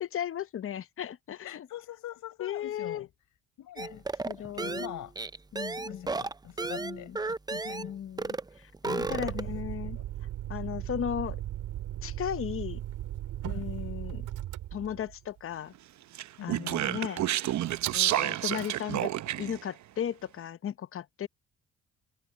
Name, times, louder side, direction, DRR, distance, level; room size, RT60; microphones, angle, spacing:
voice 1, 0.0-1.7 2.4-3.1 3.9-4.0 4.3-4.9 5.5-6.1 6.8-7.2 7.8-8.7 9.1-10.0 10.5-11.4 12.0-12.8 13.4-14.3 14.7-15.7 16.4-17.2 17.9-19.1 19.4-21.3, left 9 dB, 45° left, 0.8 m, -36 dB
voice 2, 1.4-3.1 3.6-4.0 4.4-5.1 5.7-7.1 7.5-8.0 8.8-10.0 10.7-10.9 13.5-13.7 16.4-16.8, left 12 dB, 80° left, 5.9 m, -43 dB
sound 1, 3.8-7.9 8.2-8.5 8.7-9.6, right 3 dB, 15° right, 0.6 m, -34 dB
Motor vehicle (road), 9.0-15.4 17.7-18.1 18.4-18.8, right 13 dB, 85° right, 3.4 m, -37 dB
Speech, 16.1-19.6, right 13 dB, 70° right, 0.8 m, -29 dB
cardioid pair, 90°, 30 cm